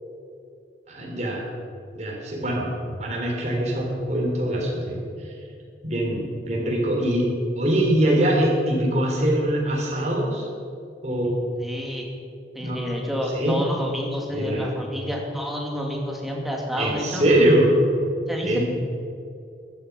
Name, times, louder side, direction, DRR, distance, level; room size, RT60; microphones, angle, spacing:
voice 1, 0.9-1.4 1.9-2.7 3.0-5.0 5.8-7.2 7.5-10.4 11.0-11.4 12.6-12.8 13.3-13.6 14.3-14.7 16.8-17.7 18.4-18.6, right 1 dB, 40° right, -2 dB, 3.5 m, -23 dB
voice 2, 11.6-12.1 12.5-17.2 18.3-18.6, equal, ahead, -1 dB, 2.1 m, -29 dB
14.0 x 11.5 x 6.0 m, 2.5 s
head